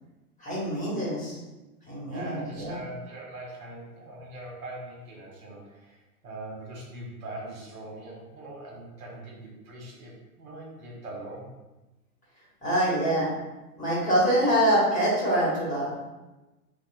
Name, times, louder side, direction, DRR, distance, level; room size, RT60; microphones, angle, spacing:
voice 1, 0.4-1.4 1.9-2.8 12.6-13.3 13.8-16.0, equal, 15° left, -7 dB, 1.0 m, -25 dB
voice 2, 2.1-11.5, right 1 dB, 60° right, -3 dB, 1.1 m, -41 dB
3.2 x 2.1 x 3.1 m, 1.1 s
hypercardioid pair, 110°, 47 cm